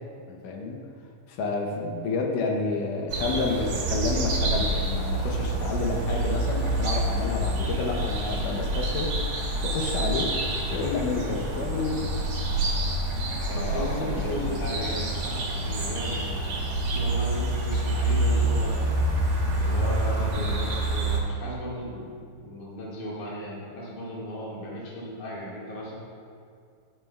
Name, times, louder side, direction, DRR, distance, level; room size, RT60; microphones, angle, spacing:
voice 1, 0.3-0.8 1.3-10.3 10.7-12.0 13.5-14.6, left 3 dB, 85° left, 1 dB, 2.4 m, -30 dB
sound 1, 3.1-21.2, right 1 dB, 65° right, 2.6 m, -27 dB
voice 2, 13.5-16.6 16.9-18.9 19.6-26.0, equal, 40° left, -6 dB, 2.1 m, -36 dB
12.0 x 9.6 x 2.3 m, 2.3 s
omnidirectional pair, 3.6 m